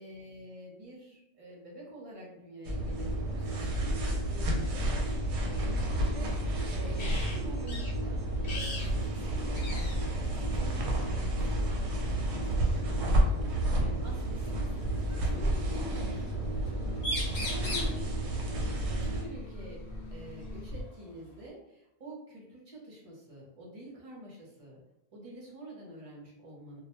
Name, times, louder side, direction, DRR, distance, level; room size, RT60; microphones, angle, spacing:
voice 1, 0.0-16.8 17.5-18.1 18.8-19.8 20.1-24.8 25.1-26.8, right 1 dB, 40° right, -4 dB, 0.6 m, -47 dB
sound 1, 2.6-19.2, right 1 dB, 70° right, 0.8 m, -31 dB
sound 2, 5.4-20.8, equal, 75° left, 0.9 m, -41 dB
sound 3, 7.0-7.4 7.7-7.9 8.4-8.9 9.2-9.3 9.5-10.1 11.3-11.5 13.2-13.3 14.4-15.3 16.7-16.8 17.0-18.0 19.9-20.0 20.5-21.5, left 1 dB, 40° left, 0.7 m, -38 dB
2.2 x 2.1 x 2.9 m, 0.85 s
omnidirectional pair, 1.2 m